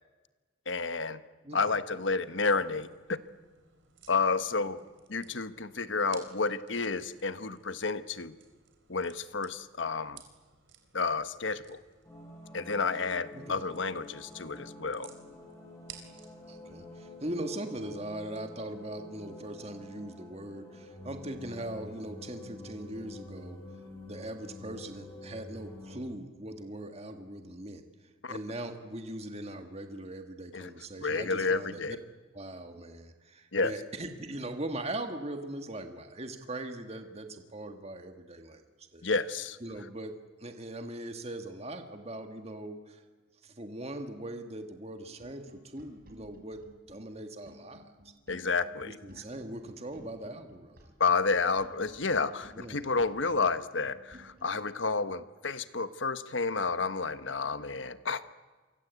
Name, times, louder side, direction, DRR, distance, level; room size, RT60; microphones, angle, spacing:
voice 1, 0.7-1.2 1.5-3.2 4.1-4.8 5.1-8.3 8.9-10.2 10.9-11.8 12.5-15.1 28.2-28.4 30.5-30.7 31.0-32.0 33.5-33.7 39.0-39.6 48.3-49.0 51.0-58.2, left 4 dB, 70° left, 12 dB, 1.2 m, -30 dB
voice 2, 1.4-1.8 13.3-13.6 16.5-23.6 24.1-27.8 28.3-32.0 32.3-39.1 39.6-40.1 40.4-43.0 43.4-46.6 46.9-47.9 48.9-50.8 52.5-52.9, right 1 dB, 30° right, 6 dB, 1.8 m, -40 dB
sound 1, 2.2-18.4, right 8 dB, 70° right, 4.1 m, -58 dB
sound 2, 12.0-26.0, left 2 dB, 15° left, 7.4 m, -48 dB
sound 3, 45.0-54.6, equal, 45° right, 5.1 m, -55 dB
28.5 x 24.5 x 8.3 m, 1.3 s
head